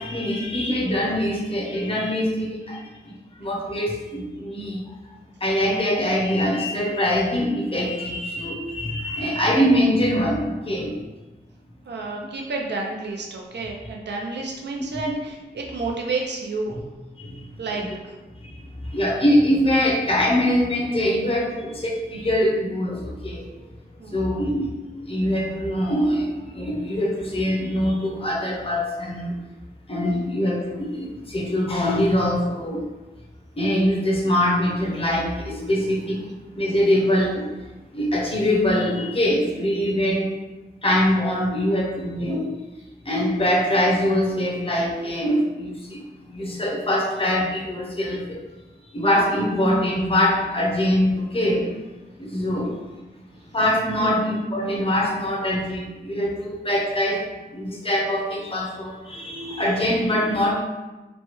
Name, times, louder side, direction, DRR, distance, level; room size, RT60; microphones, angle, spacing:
voice 1, 0.0-4.9 5.4-11.0 15.1-15.2 17.2-17.9 18.4-23.5 24.1-29.3 29.9-32.9 33.6-37.5 37.9-40.3 40.8-42.6 43.0-48.4 48.9-51.7 52.2-52.8 53.5-60.6, left 1 dB, 30° left, -2 dB, 0.6 m, -23 dB
voice 2, 11.9-16.8 17.6-17.8 24.0-24.4 54.0-54.2, right 3 dB, 85° right, 0 dB, 0.5 m, -30 dB
3.0 x 2.2 x 3.0 m, 1.1 s
wide cardioid pair, 80°, 17 cm